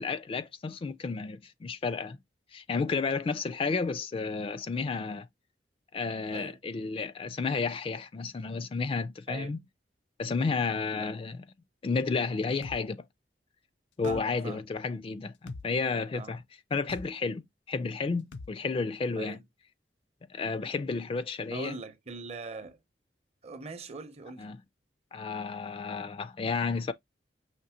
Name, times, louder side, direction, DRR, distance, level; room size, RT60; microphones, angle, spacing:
voice 1, 0.0-2.2 2.5-5.3 5.9-9.6 10.2-11.4 11.8-13.0 14.0-16.4 16.7-19.4 20.3-21.7 24.4-24.6 25.1-26.9, left 4 dB, 30° left, 0.3 m, -32 dB
voice 2, 9.3-9.6 11.0-11.2 14.0-14.6 16.1-16.4 19.2-19.4 21.5-22.8 23.4-24.5, right 3 dB, 35° right, 0.6 m, -41 dB
sound 1, 12.6-12.8 14.0-14.2 15.5-15.7 16.9-17.1 18.3-18.5, left 3 dB, 90° left, 0.5 m, -41 dB
5.8 x 2.8 x 2.7 m
head